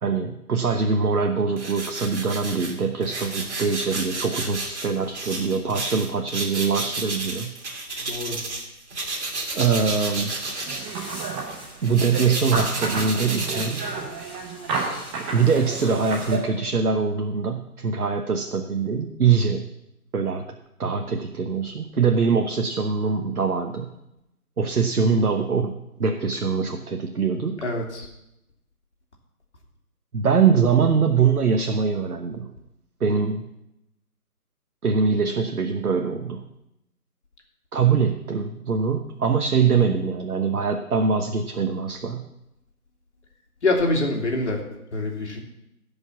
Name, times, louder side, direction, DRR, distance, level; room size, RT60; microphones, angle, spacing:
voice 1, 0.0-7.5 9.5-10.4 11.8-13.8 15.3-19.7 20.1-20.5 20.8-23.9 24.6-27.6 30.1-32.5 33.0-33.5 34.8-36.4 37.7-42.3, right 5 dB, 70° right, 5 dB, 1.1 m, -23 dB
sound 1, 1.6-8.6 8.9-14.4, right 2 dB, 45° right, 2.6 m, -32 dB
voice 2, 8.0-8.4 27.6-28.1 43.6-44.6 44.9-45.4, left 2 dB, 50° left, 1 dB, 2.7 m, -25 dB
sound 2, 10.3-16.4, right 4 dB, 5° right, 1.0 m, -31 dB
15.5 x 5.4 x 7.2 m, 0.87 s
figure-of-eight pair, 150°, 45 cm